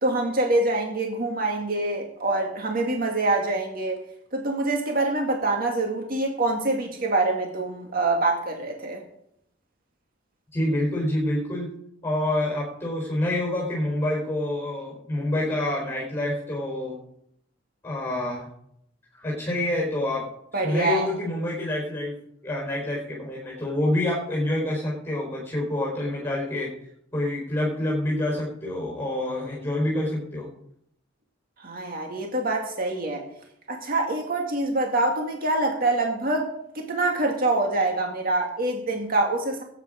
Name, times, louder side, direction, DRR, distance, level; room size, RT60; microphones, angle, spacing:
voice 1, 0.0-4.0 4.3-9.0 20.5-21.1 31.6-33.2 33.7-39.6, right 2 dB, 50° right, 2 dB, 2.1 m, -25 dB
voice 2, 10.5-11.7 12.0-17.0 17.8-18.5 19.1-20.3 20.6-22.2 22.4-26.7 27.1-30.5, left 1 dB, 15° left, -2 dB, 4.3 m, -27 dB
19.5 x 9.1 x 5.1 m, 0.74 s
head